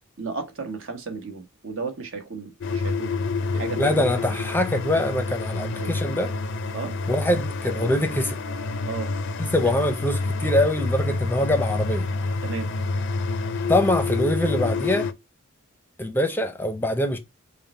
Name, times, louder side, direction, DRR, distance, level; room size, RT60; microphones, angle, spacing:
voice 1, 0.2-3.3 3.5-4.0 4.3-4.4 5.6-6.0 6.7-6.9 8.9-9.1 9.6-9.7 12.4-12.7, right 4 dB, 65° right, 1.2 m, -34 dB
sound 1, 2.6-15.1, left 3 dB, 60° left, 0.5 m, -28 dB
voice 2, 3.8-6.3 7.1-8.4 9.4-12.1 13.7-15.1 16.0-17.2, left 1 dB, 10° left, 0.6 m, -23 dB
5.4 x 2.2 x 4.2 m
head